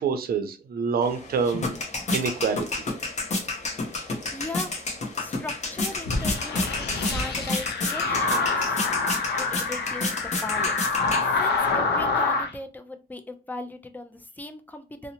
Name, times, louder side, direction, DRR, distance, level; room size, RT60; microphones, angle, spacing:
voice 1, 0.0-1.8 2.1-2.7, right 5 dB, 65° right, 0.5 m, -26 dB
sound 1, 1.0-11.7, left 2 dB, 45° left, 0.7 m, -31 dB
voice 2, 3.6-4.0 4.3-4.7 5.2-8.8 9.4-10.9 11.2-15.1, left 2 dB, 10° left, 0.3 m, -38 dB
sound 2, 6.0-12.5, left 3 dB, 85° left, 0.6 m, -26 dB
2.7 x 2.0 x 2.8 m
wide cardioid pair, 120°, 17 cm